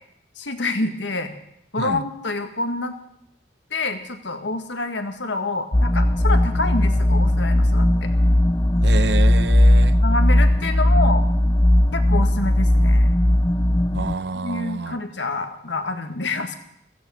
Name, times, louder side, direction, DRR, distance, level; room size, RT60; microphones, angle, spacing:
voice 1, 0.4-1.3 1.7-2.9 3.7-8.1 10.0-11.3 11.9-13.1 14.3-16.6, left 2 dB, 85° left, 7 dB, 1.8 m, -27 dB
sound 1, 5.7-14.1, left 1 dB, 20° left, 0.5 m, -17 dB
voice 2, 8.8-10.0 13.9-15.0, right 3 dB, 75° right, 14 dB, 0.8 m, -28 dB
15.0 x 15.0 x 6.3 m, 0.75 s
head